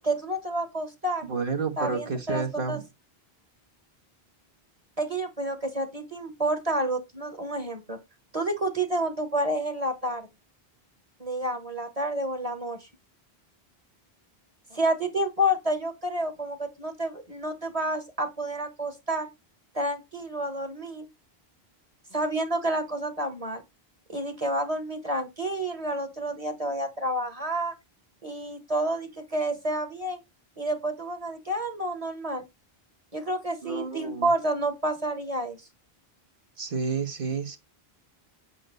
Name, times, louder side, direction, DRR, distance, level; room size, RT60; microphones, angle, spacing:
voice 1, 0.0-1.3 1.8-2.8 5.0-8.0 8.3-10.3 11.2-12.9 14.7-19.3 19.7-21.1 22.1-23.6 24.1-27.7 28.2-30.2 30.6-32.4 33.1-35.6, right 1 dB, 35° right, 1.7 m, -29 dB
voice 2, 1.3-2.8 33.6-34.3 36.6-37.6, right 4 dB, 60° right, 1.6 m, -30 dB
8.6 x 5.8 x 4.0 m
omnidirectional pair, 1.1 m